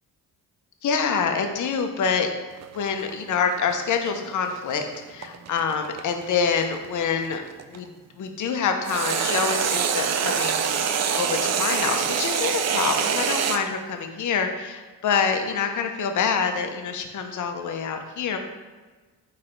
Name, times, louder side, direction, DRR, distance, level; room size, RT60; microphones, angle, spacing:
voice 1, 0.8-2.3 2.7-4.8 5.1-7.4 7.7-7.9 8.2-10.7 11.1-18.4, left 6 dB, 50° left, 5 dB, 0.6 m, -26 dB
sound 1, 2.6-7.8 8.9-13.6, right 7 dB, 40° right, 0.4 m, -25 dB
4.1 x 3.2 x 3.8 m, 1.3 s
cardioid pair, 70°, 40 cm